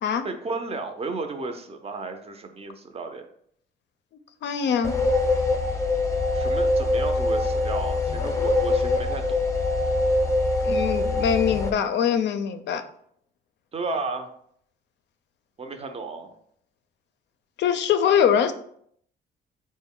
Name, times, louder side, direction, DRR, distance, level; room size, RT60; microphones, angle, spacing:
voice 1, 0.2-3.3 6.3-9.4 13.7-14.3 15.6-16.3, right 3 dB, 30° right, 6 dB, 0.5 m, -33 dB
voice 2, 4.4-5.0 10.6-12.8 17.6-18.5, left 8 dB, 60° left, 10 dB, 0.4 m, -23 dB
sound 1, 4.8-11.7, left 2 dB, 15° left, 0.6 m, -23 dB
4.0 x 2.1 x 3.6 m, 0.66 s
cardioid pair, 90°, 20 cm